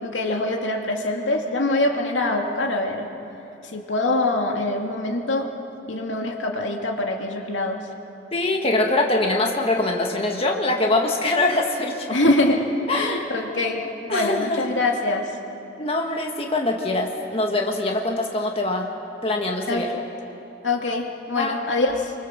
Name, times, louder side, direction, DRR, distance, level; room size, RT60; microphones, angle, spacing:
voice 1, 0.0-3.1 3.7-5.5 5.9-7.8 12.1-15.3 19.7-19.9 20.6-22.1, left 2 dB, 85° left, 2 dB, 2.4 m, -24 dB
voice 2, 8.3-12.2 12.9-13.2 14.1-14.8 15.8-18.9 19.2-19.9 21.4-21.6, left 2 dB, 30° left, 1 dB, 1.9 m, -23 dB
30.0 x 24.5 x 7.5 m, 2.9 s
head